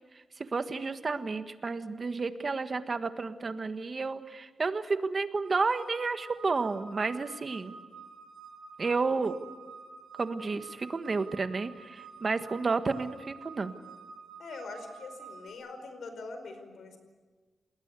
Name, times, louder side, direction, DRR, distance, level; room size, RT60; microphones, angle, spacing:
voice 1, 0.4-7.8 8.8-9.4 10.1-13.7, right 4 dB, 45° right, 9 dB, 1.5 m, -31 dB
sound 1, 5.4-15.5, right 5 dB, 80° right, 3.7 m, -49 dB
voice 2, 14.4-17.0, left 3 dB, 85° left, 7 dB, 4.9 m, -43 dB
29.0 x 20.5 x 8.3 m, 1.3 s
wide cardioid pair, 95°, 0 cm